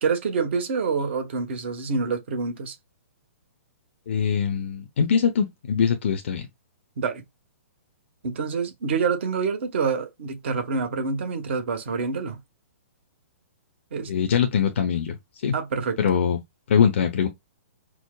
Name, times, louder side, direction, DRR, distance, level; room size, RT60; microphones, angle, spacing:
voice 1, 0.0-2.7 7.0-7.2 8.2-12.4 13.9-14.1 15.5-16.2, right 5 dB, 55° right, 1.0 m, -27 dB
voice 2, 4.1-6.5 14.1-15.2 15.4-15.5 16.0-16.4 16.7-17.3, left 7 dB, 55° left, 0.6 m, -22 dB
4.6 x 2.0 x 2.2 m
figure-of-eight pair, 120°, 8 cm